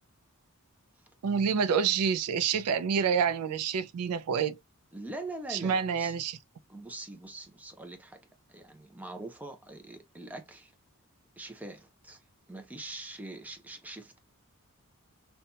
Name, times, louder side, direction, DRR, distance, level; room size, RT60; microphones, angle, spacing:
voice 1, 1.2-4.6 5.5-6.4, right 6 dB, 80° right, 0.4 m, -28 dB
voice 2, 4.9-6.1 6.7-8.2 8.5-10.7 11.4-12.2 12.5-14.2, right 2 dB, 5° right, 0.5 m, -43 dB
2.8 x 2.2 x 2.7 m
head